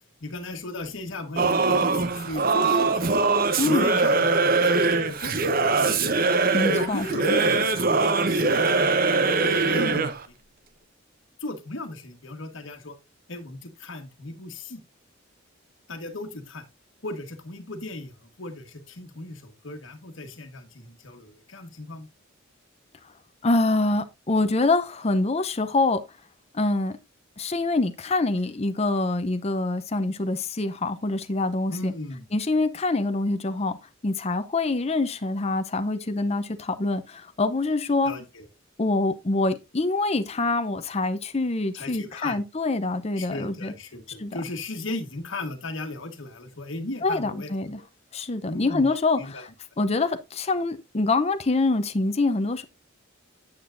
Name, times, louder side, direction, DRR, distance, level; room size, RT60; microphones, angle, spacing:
voice 1, 0.2-2.9 3.7-6.1 6.7-10.3 11.4-13.0 13.3-14.8 15.9-16.6 17.0-22.1 31.7-32.3 38.0-38.5 41.7-42.4 43.2-47.7 48.5-49.4, left 2 dB, 65° left, 1.4 m, -37 dB
Singing / Musical instrument, 1.4-10.2, right 3 dB, 45° right, 0.8 m, -22 dB
voice 2, 3.6-3.9 6.5-7.4 23.4-26.0 26.5-27.0 27.4-31.9 32.3-33.8 34.0-38.1 38.8-43.7 44.1-44.4 47.0-47.8 48.1-49.5 49.8-52.6, left 2 dB, 30° left, 0.6 m, -25 dB
9.1 x 8.1 x 2.6 m
head